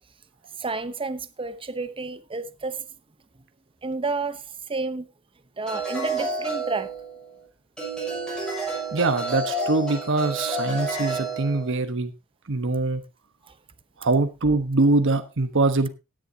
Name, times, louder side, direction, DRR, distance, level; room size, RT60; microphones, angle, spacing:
voice 1, 0.6-2.9 3.8-5.1 5.6-6.9 13.5-13.6, right 3 dB, 25° right, 0.8 m, -30 dB
sound 1, 5.7-7.4 7.8-11.7, right 2 dB, 5° left, 6.6 m, -30 dB
voice 2, 8.9-12.1 12.5-13.0 14.0-15.9, right 3 dB, 60° right, 1.2 m, -23 dB
17.0 x 10.5 x 2.8 m
head